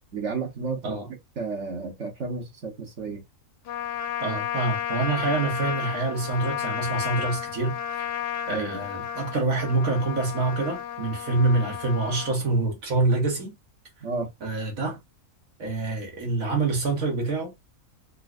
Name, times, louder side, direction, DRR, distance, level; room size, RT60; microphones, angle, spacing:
voice 1, 0.1-1.0 1.4-3.2 8.5-8.8 14.0-14.3, right 4 dB, 60° right, 1.4 m, -32 dB
Trumpet, 3.7-12.3, left 9 dB, 65° left, 0.8 m, -32 dB
voice 2, 4.2-8.2 8.5-13.6 14.4-15.0 15.6-17.5, right 3 dB, 75° right, 1.6 m, -26 dB
3.9 x 2.5 x 2.4 m
omnidirectional pair, 1.4 m